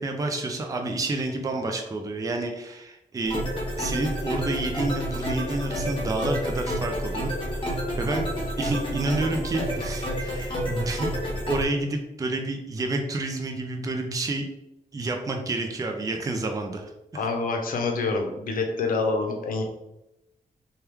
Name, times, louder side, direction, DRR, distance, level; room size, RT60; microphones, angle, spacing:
voice 1, 0.0-3.4 3.8-8.2 8.6-11.1 11.5-14.5 14.9-16.9 17.1-17.2, right 2 dB, 25° right, 3 dB, 0.4 m, -29 dB
sound 1, 3.3-11.6, equal, 40° left, 1.0 m, -29 dB
voice 2, 17.1-19.6, left 3 dB, 80° left, 3 dB, 0.6 m, -26 dB
2.9 x 2.3 x 3.3 m, 0.89 s
wide cardioid pair, 105°, 14 cm